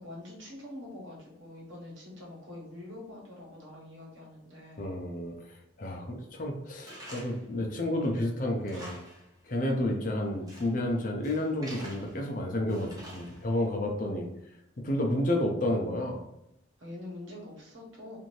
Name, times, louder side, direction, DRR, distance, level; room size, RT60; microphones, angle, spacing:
voice 1, 0.0-4.8 10.4-10.6 16.8-18.2, left 1 dB, 75° right, -3 dB, 1.1 m, -45 dB
voice 2, 4.8-9.0 9.4-14.3 14.8-16.3, left 1 dB, 40° left, 1 dB, 0.5 m, -31 dB
Tools, 6.9-7.5 7.9-8.0 8.5-9.3 9.5-9.6 10.2-10.8 11.2-12.2 12.7-13.6, right 1 dB, 20° right, 0.6 m, -47 dB
2.7 x 2.6 x 3.1 m, 0.83 s
head